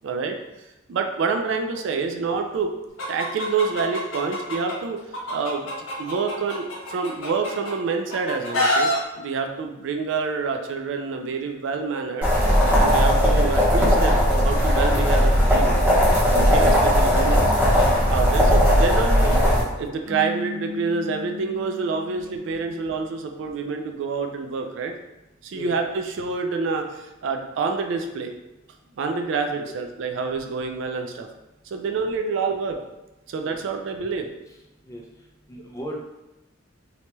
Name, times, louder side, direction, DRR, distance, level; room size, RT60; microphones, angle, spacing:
voice 1, 0.0-0.4 0.9-2.7 3.1-5.0 5.3-5.6 6.0-12.3 12.7-15.8 16.4-17.4 18.1-19.4 19.7-24.9 25.4-28.3 29.0-31.3 31.7-32.8 33.3-34.3, right 4 dB, 65° right, 4 dB, 0.3 m, -27 dB
Chicken rooster, 3.0-4.7 5.1-7.7 8.1-9.0, left 1 dB, 85° left, 0.8 m, -26 dB
sound 1, 12.2-19.6, equal, 10° right, 0.8 m, -18 dB
sound 2, 20.0-23.4, left 5 dB, 35° right, 1.0 m, -38 dB
voice 2, 35.5-36.0, equal, 15° left, -2 dB, 0.4 m, -36 dB
2.8 x 2.2 x 2.9 m, 0.96 s
head